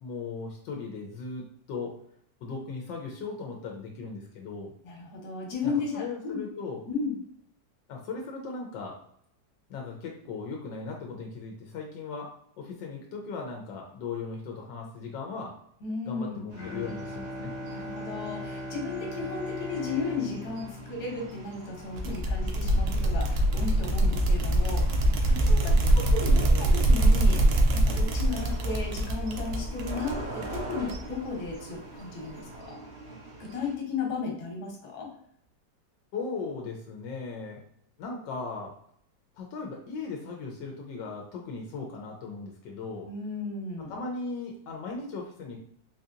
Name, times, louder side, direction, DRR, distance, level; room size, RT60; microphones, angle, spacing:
voice 1, 0.0-1.9 2.4-4.7 5.6-6.8 7.9-9.0 9.7-12.3 12.6-15.5 16.0-17.5 25.8-26.1 36.1-37.6 38.0-38.7 39.4-43.1 43.8-45.6, left 4 dB, 85° left, 1 dB, 1.3 m, -37 dB
voice 2, 4.8-6.4 6.9-7.1 15.8-16.4 17.7-32.8 33.4-35.1 43.1-43.9, left 4 dB, 65° left, 0 dB, 1.4 m, -35 dB
Bowed string instrument, 16.5-22.2, left 1 dB, 40° left, 1.0 m, -39 dB
sound 1, 16.5-33.8, right 2 dB, 90° right, 1.7 m, -44 dB
sound 2, 22.0-31.2, right 1 dB, 70° right, 1.0 m, -24 dB
3.9 x 2.7 x 2.5 m, 0.67 s
omnidirectional pair, 2.0 m